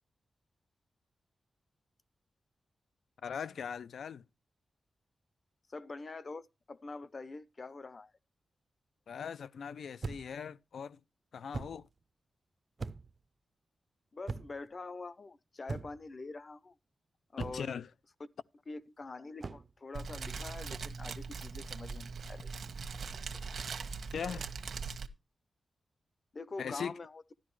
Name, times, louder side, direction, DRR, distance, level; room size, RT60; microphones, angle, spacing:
voice 1, 3.2-4.3 9.1-11.0 11.3-11.9 17.4-17.9 24.1-24.5 26.6-27.0, left 7 dB, 80° left, 0.5 m, -40 dB
voice 2, 5.7-8.1 14.1-16.8 17.3-17.7 18.7-22.5 26.3-27.3, left 3 dB, 35° left, 0.6 m, -45 dB
sound 1, 10.0-10.4 11.5-11.8 12.8-13.2 14.3-14.7 15.7-16.1 17.4-17.8 19.4-19.7, right 3 dB, 35° right, 0.6 m, -40 dB
Fire, 19.9-25.1, right 5 dB, 65° right, 1.2 m, -41 dB
12.5 x 11.0 x 3.1 m
wide cardioid pair, 165°, 0 cm